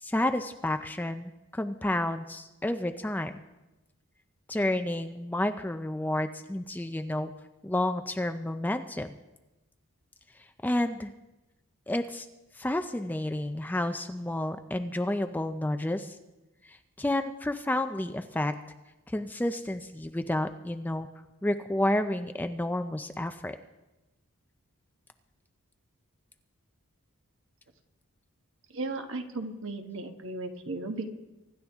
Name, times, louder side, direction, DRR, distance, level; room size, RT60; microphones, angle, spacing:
voice 1, 0.0-3.4 4.5-7.3 7.6-9.1 10.6-11.1 11.9-12.3 12.5-16.2 16.6-18.5 19.1-21.1 21.4-23.6, left 1 dB, 10° left, 8 dB, 0.4 m, -30 dB
voice 2, 28.7-31.1, right 2 dB, 60° right, 6 dB, 1.3 m, -35 dB
24.5 x 11.5 x 3.5 m, 1.0 s
head